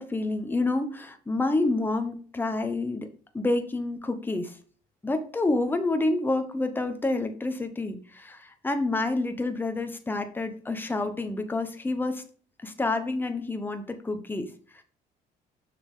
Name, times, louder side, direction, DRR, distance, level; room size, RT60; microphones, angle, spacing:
voice 1, 0.0-3.1 3.3-4.6 5.0-12.2 12.6-14.8, left 2 dB, 10° left, 7 dB, 0.9 m, -28 dB
6.7 x 6.4 x 3.6 m, 0.43 s
cardioid pair, 110°, 17 cm